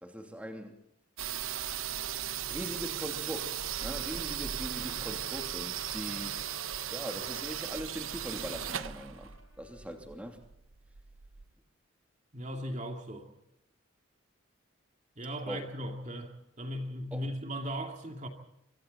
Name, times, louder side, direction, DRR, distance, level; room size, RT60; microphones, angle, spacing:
voice 1, 0.0-0.7 2.5-6.3 6.9-9.3 9.6-10.4 15.5-15.6 17.1-17.3, equal, 5° right, 3 dB, 2.9 m, -41 dB
sound 1, 1.2-11.5, right 10 dB, 90° right, 1.0 m, -37 dB
Trumpet, 2.9-10.1, left 3 dB, 70° left, 5.8 m, -60 dB
voice 2, 12.3-13.3 15.2-18.3, equal, 35° right, 4 dB, 2.4 m, -38 dB
25.0 x 24.5 x 4.1 m, 0.80 s
head